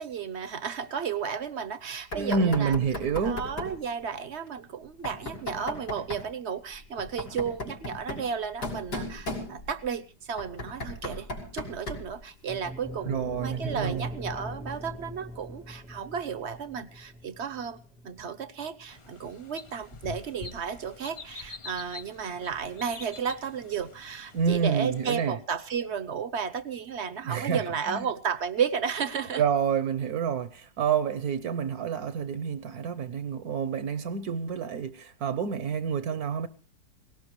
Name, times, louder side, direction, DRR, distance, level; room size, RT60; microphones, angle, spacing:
voice 1, 0.0-2.8 3.2-11.3 11.5-17.8 18.0-29.4, right 7 dB, 50° right, 0.9 m, -33 dB
Knock, 2.1-3.8 5.0-6.3 7.0-9.9 10.4-12.2, left 2 dB, 75° left, 4.4 m, -36 dB
voice 2, 2.2-3.4 13.0-14.0 24.3-25.4 27.2-28.0 29.4-36.5, right 6 dB, 70° right, 1.3 m, -28 dB
sound 1, 12.5-20.7, equal, ahead, 0.9 m, -41 dB
sound 2, 18.9-25.1, left 4 dB, 40° left, 0.4 m, -46 dB
18.5 x 18.0 x 3.0 m
omnidirectional pair, 1.7 m